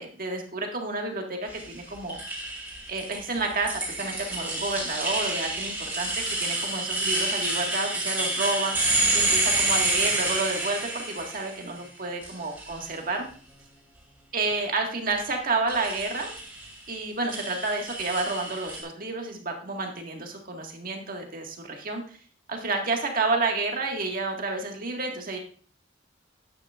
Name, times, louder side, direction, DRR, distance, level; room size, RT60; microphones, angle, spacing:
voice 1, 0.0-2.2 2.9-8.7 9.1-13.3 14.3-16.3 16.9-22.2 22.5-25.4, right 3 dB, 45° right, 2 dB, 1.7 m, -30 dB
sound 1, 1.5-11.8 12.2-13.0 15.7-16.7 17.3-18.8, right 2 dB, 10° right, 2.9 m, -28 dB
10.5 x 9.0 x 2.4 m, 0.43 s
head